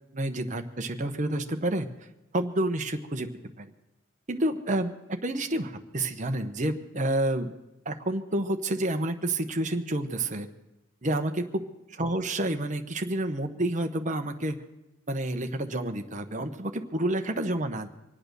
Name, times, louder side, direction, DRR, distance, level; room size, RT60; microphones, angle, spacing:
voice 1, 0.1-2.1 2.3-3.3 3.6-3.7 4.3-7.5 7.8-10.5 11.0-11.7 12.0-14.6 15.1-17.9, right 1 dB, 35° right, 6 dB, 1.0 m, -29 dB
24.5 x 8.7 x 6.8 m, 0.95 s
head